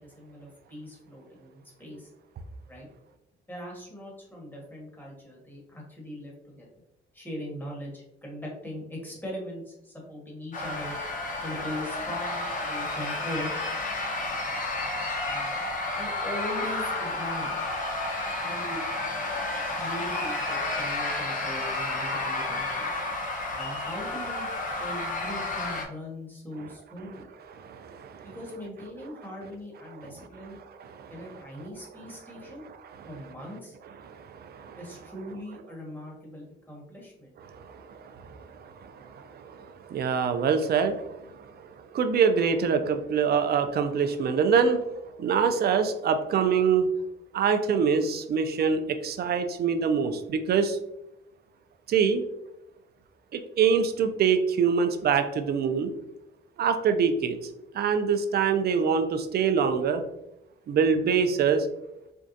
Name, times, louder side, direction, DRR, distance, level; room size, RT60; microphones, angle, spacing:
voice 1, 0.0-2.1 2.7-2.9 3.5-6.8 7.1-10.9 11.4-13.5 15.2-15.6 15.9-17.7 18.3-18.8 19.7-23.0 23.5-24.5 24.8-27.3 28.2-30.6 31.1-32.7 33.0-33.8 34.8-37.3, left 1 dB, 10° left, -3 dB, 1.5 m, -40 dB
sound 1, 10.5-25.9, left 2 dB, 40° left, 0.9 m, -31 dB
voice 2, 27.6-28.3 30.8-31.1 34.1-34.8 37.5-41.3 41.8-44.8 45.2-46.9 47.3-50.8 51.9-52.2 53.3-55.9 56.6-57.4 57.7-60.0 60.7-61.7, right 6 dB, 55° right, 8 dB, 0.5 m, -25 dB
4.4 x 2.3 x 2.6 m, 0.86 s
cardioid pair, 90°, 20 cm